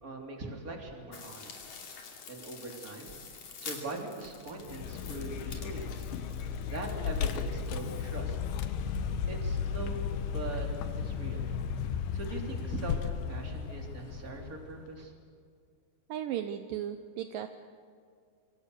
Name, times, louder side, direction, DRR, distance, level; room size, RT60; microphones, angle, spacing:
voice 1, 0.0-1.6 2.3-3.2 3.6-6.1 6.6-8.4 9.3-10.7 11.0-11.5 12.1-15.1, right 2 dB, 25° right, 1 dB, 3.6 m, -41 dB
sound 1, 1.1-7.7, left 5 dB, 50° left, 3.9 m, -48 dB
Vehicle, 4.6-15.0, left 6 dB, 85° left, 3.2 m, -35 dB
voice 2, 16.1-17.5, right 10 dB, 75° right, 8 dB, 2.3 m, -35 dB
26.5 x 25.0 x 6.8 m, 2.2 s
omnidirectional pair, 4.4 m